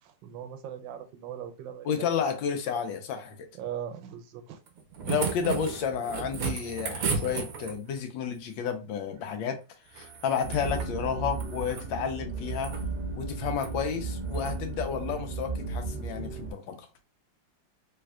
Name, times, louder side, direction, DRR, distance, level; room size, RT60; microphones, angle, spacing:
voice 1, 0.0-2.1 3.5-4.6 13.3-13.4, right 9 dB, 85° right, 1.3 m, -40 dB
voice 2, 1.8-3.4 5.1-9.6 9.9-12.7 13.2-16.9, left 7 dB, 85° left, 1.4 m, -31 dB
sound 1, 4.7-8.0 9.9-10.9 11.3-11.9 12.4-12.8 13.5-13.7 14.3-14.6 15.9-16.0, right 5 dB, 60° right, 0.9 m, -34 dB
sound 2, 10.4-16.5, right 4 dB, 30° right, 1.1 m, -35 dB
3.4 x 3.2 x 2.3 m
omnidirectional pair, 2.0 m